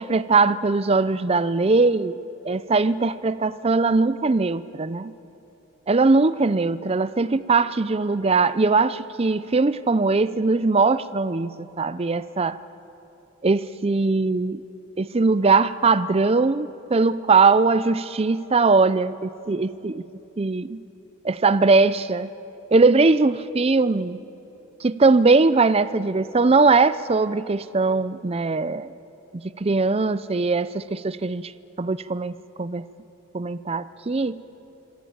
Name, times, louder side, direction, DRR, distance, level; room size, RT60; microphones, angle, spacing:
voice 1, 0.0-2.2 2.4-5.1 5.9-12.6 13.4-14.6 15.0-20.0 20.4-20.8 21.2-22.3 22.7-24.2 24.8-28.9 29.6-31.5 31.8-32.3 32.6-32.8 33.3-34.4, right 3 dB, 30° right, 15 dB, 0.5 m, -20 dB
25.5 x 25.0 x 8.7 m, 2.9 s
head